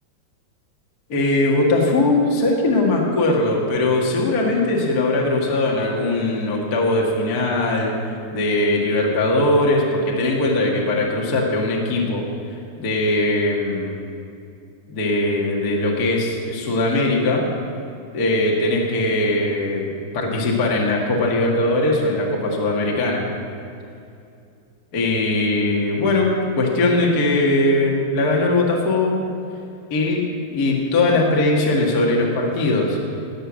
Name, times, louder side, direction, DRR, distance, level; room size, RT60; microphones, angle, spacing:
voice 1, 1.1-7.9 8.3-12.3 12.8-14.0 14.9-17.4 18.1-23.2 24.9-26.3 26.6-29.2 29.9-30.2 30.5-33.0, left 2 dB, 45° left, -2 dB, 1.2 m, -20 dB
18.5 x 8.0 x 6.3 m, 2.5 s
omnidirectional pair, 4.7 m